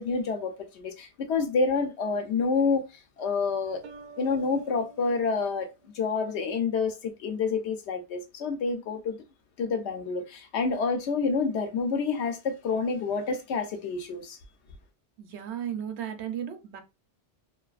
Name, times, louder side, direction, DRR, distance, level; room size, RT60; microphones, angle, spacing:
voice 1, 0.0-2.9 3.2-3.8 4.2-5.7 5.9-9.2 9.6-14.4, left 4 dB, 75° left, 0.9 m, -28 dB
sound 1, 3.8-6.5, right 4 dB, 60° right, 0.5 m, -48 dB
voice 2, 15.2-16.8, right 9 dB, 75° right, 0.8 m, -35 dB
2.5 x 2.3 x 2.4 m
omnidirectional pair, 1.2 m